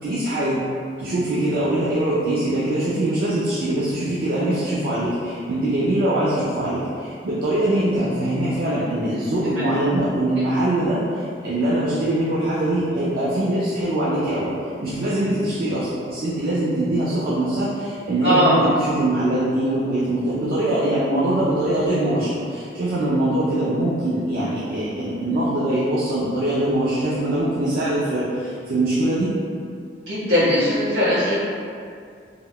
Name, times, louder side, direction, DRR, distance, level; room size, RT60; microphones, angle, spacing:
voice 1, 0.0-0.6 1.0-14.5 14.8-29.3, right 1 dB, 55° right, -9 dB, 0.4 m, -22 dB
voice 2, 18.2-18.6 30.1-31.4, equal, 75° right, -11 dB, 1.4 m, -19 dB
3.5 x 2.2 x 2.2 m, 2.3 s
head